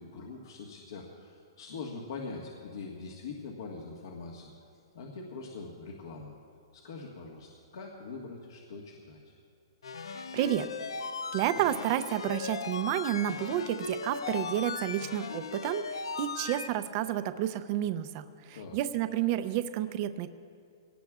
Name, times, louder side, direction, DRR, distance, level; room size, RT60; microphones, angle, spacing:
voice 1, 0.0-4.5 4.9-6.3 6.7-9.3 18.5-18.8, left 4 dB, 65° left, -1 dB, 1.6 m, -43 dB
sound 1, 9.8-16.7, left 5 dB, 90° left, 0.6 m, -38 dB
voice 2, 10.1-10.7 11.3-20.3, right 12 dB, 30° right, 11 dB, 0.5 m, -31 dB
22.0 x 18.0 x 2.4 m, 2.5 s
hypercardioid pair, 170°, 3 cm